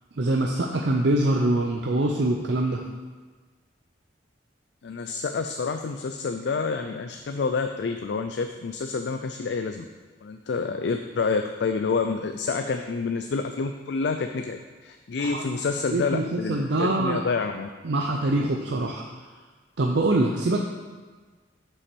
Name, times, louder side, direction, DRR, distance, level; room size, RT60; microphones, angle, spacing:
voice 1, 0.2-2.8 15.2-15.4 15.9-17.2 17.8-19.1 19.8-20.6, right 2 dB, 75° right, 0 dB, 0.6 m, -24 dB
voice 2, 4.8-9.8 10.2-17.7, left 4 dB, 70° left, 6 dB, 0.4 m, -28 dB
5.9 x 5.6 x 6.1 m, 1.4 s
head